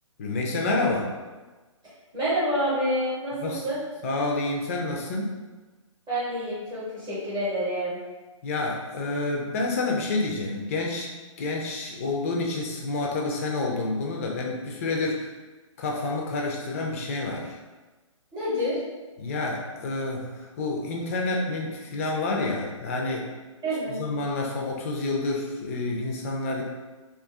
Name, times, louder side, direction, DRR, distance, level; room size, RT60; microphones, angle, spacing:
voice 1, 0.2-1.1 3.4-3.6 4.0-5.4 8.4-11.1 11.4-15.3 15.8-17.6 19.2-23.3 23.9-26.6, left 2 dB, 25° left, -1 dB, 0.4 m, -28 dB
voice 2, 2.1-3.8 6.1-8.0 18.3-18.8 23.6-24.0, equal, 20° right, -10 dB, 0.8 m, -28 dB
2.5 x 2.4 x 2.3 m, 1.2 s
figure-of-eight pair, 140°, 17 cm